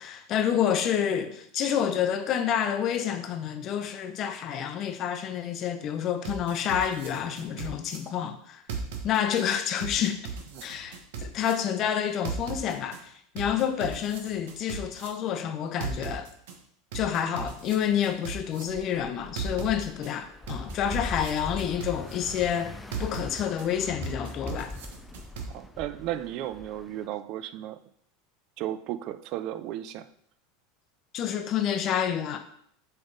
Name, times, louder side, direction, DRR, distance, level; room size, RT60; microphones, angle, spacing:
voice 1, 0.0-8.6 9.0-10.3 10.6-16.3 16.9-22.7 23.0-24.7 31.1-32.4, left 9 dB, 45° left, 0.8 m, -28 dB
sound 1, 6.2-8.0 8.7-9.4 9.8-11.5 12.2-13.0 13.4-15.1 15.8-16.5 16.9-18.6 19.4-20.1 20.5-22.1 22.9-23.7 24.0-25.5, right 7 dB, 80° right, 1.2 m, -37 dB
sound 2, 18.7-27.1, left 2 dB, 10° left, 0.5 m, -41 dB
voice 2, 25.5-27.8 28.6-30.1, right 12 dB, 55° right, 0.4 m, -34 dB
7.0 x 3.5 x 4.0 m
supercardioid pair, 110°, 0 cm